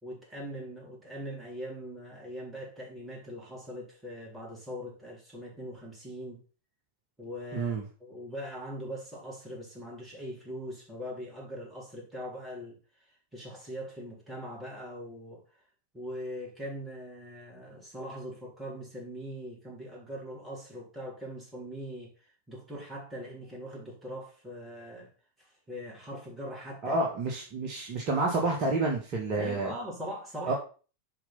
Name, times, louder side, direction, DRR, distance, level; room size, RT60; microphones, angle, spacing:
voice 1, 0.0-6.4 7.2-15.4 15.9-25.1 25.4-27.0 29.4-30.6, equal, 15° right, -2 dB, 4.1 m, -41 dB
voice 2, 7.5-7.8 26.8-29.7 30.5-30.6, right 2 dB, 40° right, 0 dB, 1.8 m, -29 dB
7.9 x 5.1 x 5.7 m, 0.37 s
figure-of-eight pair, 90°, 0 cm